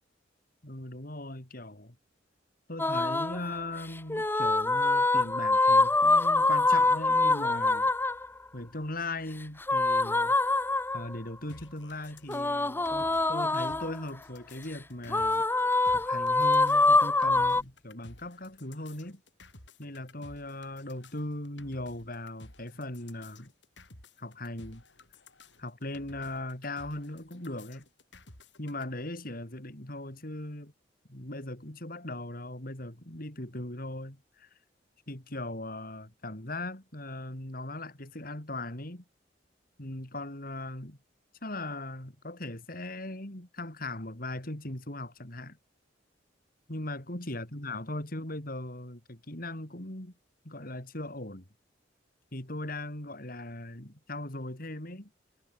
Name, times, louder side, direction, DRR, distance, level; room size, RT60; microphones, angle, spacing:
voice 1, 0.6-2.0 2.7-7.9 8.5-10.3 10.9-15.5 15.9-19.2 19.8-23.5 24.2-24.8 25.6-27.8 28.6-30.7 31.1-34.5 35.1-39.0 39.8-41.0 41.4-45.6 46.7-50.1 50.4-51.4 52.3-55.1, left 1 dB, 50° left, 4.3 m, -39 dB
sound 1, 2.8-3.4 4.1-8.3 9.6-11.2 12.3-14.0 15.1-17.6, left 2 dB, 10° left, 0.7 m, -25 dB
sound 2, 11.5-28.9, left 2 dB, 80° left, 8.0 m, -54 dB
head